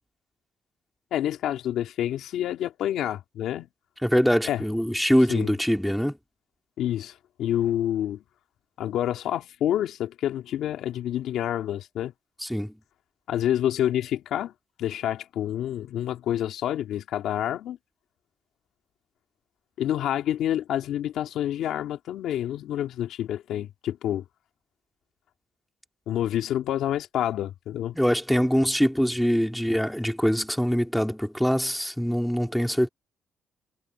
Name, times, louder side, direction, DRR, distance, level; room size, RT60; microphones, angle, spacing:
voice 1, 1.1-3.7 4.5-4.6 5.3-5.5 6.8-8.2 8.8-12.1 13.3-14.5 14.8-17.8 19.8-24.2 26.1-28.0, left 11 dB, 80° left, 2.5 m, -28 dB
voice 2, 4.0-6.1 12.4-12.7 27.9-32.9, equal, ahead, 2.9 m, -23 dB
cardioid pair, 90°, 0 cm